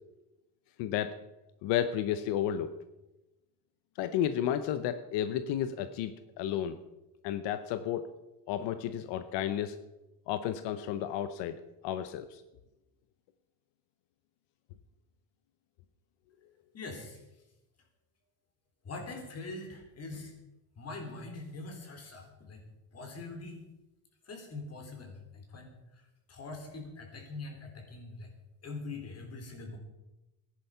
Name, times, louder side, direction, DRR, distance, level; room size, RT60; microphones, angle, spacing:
voice 1, 0.8-1.2 1.6-2.7 4.0-6.8 7.2-8.1 8.5-9.8 10.3-11.6 11.8-12.4, left 10 dB, 85° left, 11 dB, 0.8 m, -32 dB
voice 2, 16.7-17.2 18.8-20.3 20.8-22.6 22.9-23.6 24.2-28.3 28.6-29.8, left 3 dB, 35° left, 4 dB, 3.5 m, -43 dB
14.5 x 10.5 x 5.6 m, 1.0 s
cardioid pair, 130°, 41 cm